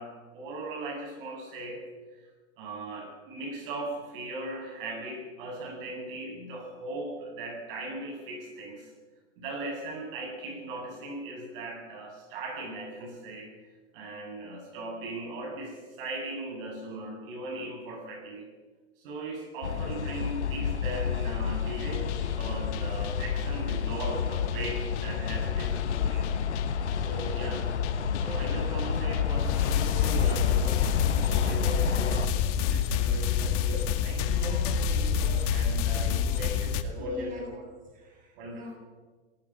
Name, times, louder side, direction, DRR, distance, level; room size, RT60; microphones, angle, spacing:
voice 1, 0.0-1.9 2.1-2.2 2.6-8.9 9.4-13.6 13.9-18.5 19.0-26.3 27.0-27.7 28.2-37.7 38.4-38.8, right 1 dB, 50° right, 2 dB, 7.8 m, -38 dB
sound 1, 19.6-32.3, left 7 dB, 80° left, 1.4 m, -30 dB
sound 2, 21.8-36.8, left 7 dB, 40° left, 1.9 m, -30 dB
voice 2, 37.0-37.4 37.9-38.8, left 1 dB, 25° right, 0 dB, 7.2 m, -43 dB
27.0 x 19.0 x 6.2 m, 1.4 s
hypercardioid pair, 110°, 34 cm